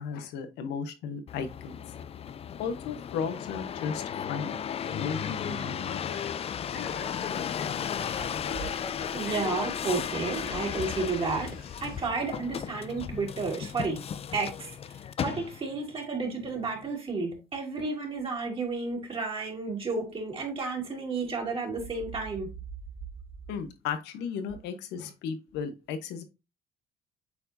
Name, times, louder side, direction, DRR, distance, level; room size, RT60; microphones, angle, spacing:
voice 1, 0.0-1.8 2.6-4.6 4.9-5.9 23.5-26.2, left 6 dB, 90° left, 1.2 m, -35 dB
sound 1, 1.3-15.8 16.4-16.9, left 8 dB, 35° left, 0.4 m, -35 dB
Male speech man speaking, 4.8-12.1, left 6 dB, 55° left, 1.6 m, -41 dB
voice 2, 9.1-14.0 14.3-14.8 15.2-22.5, right 4 dB, 30° right, 3.6 m, -32 dB
8.2 x 4.6 x 2.7 m
cardioid pair, 110°, 17 cm